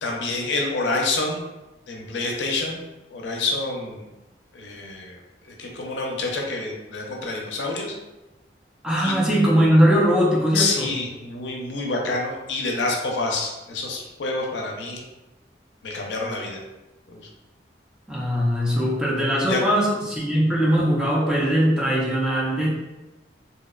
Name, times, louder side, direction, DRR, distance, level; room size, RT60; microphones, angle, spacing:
voice 1, 0.0-1.4 1.9-2.8 3.1-4.0 4.5-5.2 5.4-7.9 9.0-9.2 10.5-15.0 15.8-16.6 17.1-17.2 19.5-19.6, left 3 dB, 75° left, 0 dB, 0.5 m, -27 dB
voice 2, 8.8-10.9 18.1-22.7, equal, 5° right, -5 dB, 0.4 m, -20 dB
2.7 x 2.1 x 2.3 m, 1.0 s
head